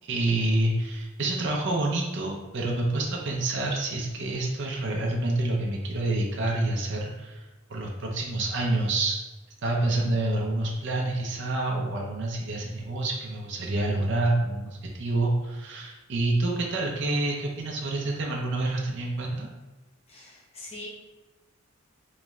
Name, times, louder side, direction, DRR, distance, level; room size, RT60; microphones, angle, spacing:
voice 1, 0.0-7.4 7.7-9.2 9.6-19.5, right 2 dB, 60° right, -1 dB, 0.6 m, -27 dB
voice 2, 20.1-20.9, left 2 dB, 30° left, -4 dB, 0.9 m, -42 dB
3.5 x 3.1 x 3.1 m, 1.1 s
head